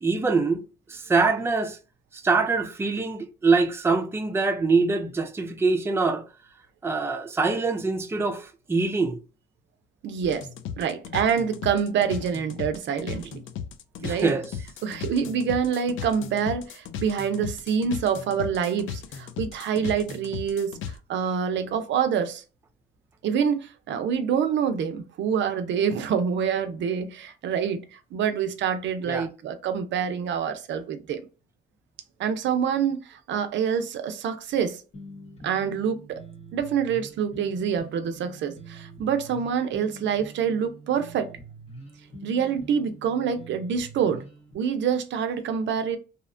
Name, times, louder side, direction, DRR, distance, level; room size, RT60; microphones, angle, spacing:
voice 1, 0.0-0.6 0.9-1.8 2.1-6.2 6.8-9.2 14.0-14.5 29.1-29.3, right 4 dB, 10° right, 0.4 m, -24 dB
voice 2, 10.0-10.5 10.8-13.4 14.0-14.3 14.8-22.4 23.2-31.3 32.2-34.8 35.4-36.2 36.5-41.3 42.2-44.2 44.5-46.0, right 7 dB, 65° right, 0.5 m, -26 dB
sound 1, 10.2-21.0, left 7 dB, 80° left, 0.5 m, -36 dB
sound 2, 34.9-44.5, right 2 dB, 35° left, 0.8 m, -45 dB
2.7 x 2.1 x 2.5 m
cardioid pair, 90°, 20 cm